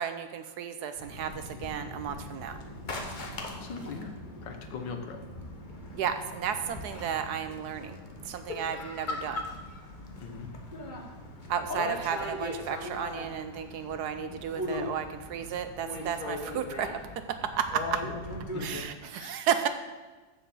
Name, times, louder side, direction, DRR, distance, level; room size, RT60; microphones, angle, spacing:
voice 1, 0.0-2.6 5.9-8.0 8.2-9.5 11.5-17.0 17.3-18.0 18.6-19.7, right 8 dB, 70° right, 9 dB, 1.1 m, -33 dB
sound 1, 0.9-18.8, left 2 dB, 35° left, 0.9 m, -39 dB
voice 2, 3.5-4.1 4.4-5.2 10.2-10.5 18.0-18.2 18.5-18.6 19.1-19.4, left 5 dB, 80° left, 5 dB, 1.7 m, -40 dB
7.2 x 6.9 x 7.1 m, 1.3 s
omnidirectional pair, 1.9 m